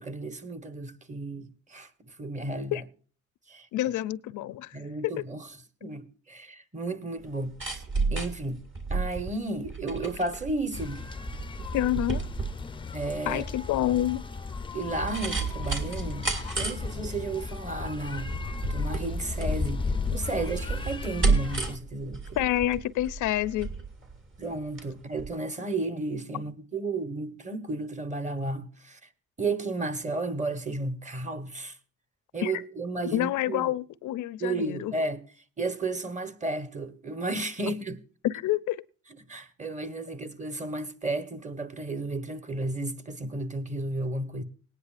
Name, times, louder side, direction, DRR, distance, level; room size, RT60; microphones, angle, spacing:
voice 1, 0.0-1.9 2.2-2.8 3.5-3.7 4.7-5.5 5.8-7.8 8.1-8.6 8.9-11.0 12.9-13.4 14.7-16.3 16.6-18.3 18.7-19.8 20.1-22.2 24.4-29.0 29.4-31.7 32.3-33.7 34.4-35.2 35.6-38.0 39.3-44.4, right 2 dB, 25° right, 1.3 m, -33 dB
voice 2, 3.7-4.8 5.2-5.3 11.7-12.2 13.3-14.2 22.4-23.7 32.4-32.6 33.1-34.9 38.2-38.8, left 14 dB, 75° left, 0.6 m, -28 dB
sound 1, 7.2-24.9 25.2-25.3, right 4 dB, 40° right, 2.3 m, -32 dB
sound 2, 10.7-21.8, left 4 dB, 15° left, 0.5 m, -35 dB
19.5 x 9.7 x 2.5 m
cardioid pair, 90°, 30 cm